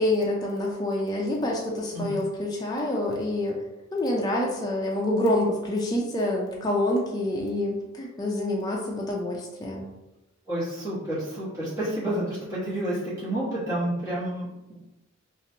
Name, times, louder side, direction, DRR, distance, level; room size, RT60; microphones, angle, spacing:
voice 1, 0.0-3.6 3.9-9.9, left 1 dB, 20° left, -2 dB, 0.4 m, -27 dB
voice 2, 10.5-14.8, right 1 dB, 15° right, -12 dB, 1.1 m, -30 dB
3.0 x 2.4 x 2.6 m, 0.98 s
head